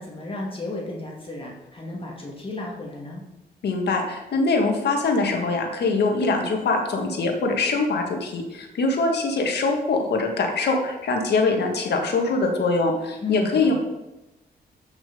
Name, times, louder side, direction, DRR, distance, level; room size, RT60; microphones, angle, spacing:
voice 1, 0.0-3.2 13.2-13.7, left 2 dB, 30° left, -2 dB, 2.1 m, -33 dB
voice 2, 3.6-13.7, left 3 dB, 75° left, 2 dB, 1.9 m, -23 dB
8.6 x 6.0 x 5.3 m, 1.0 s
cardioid pair, 100°, 17 cm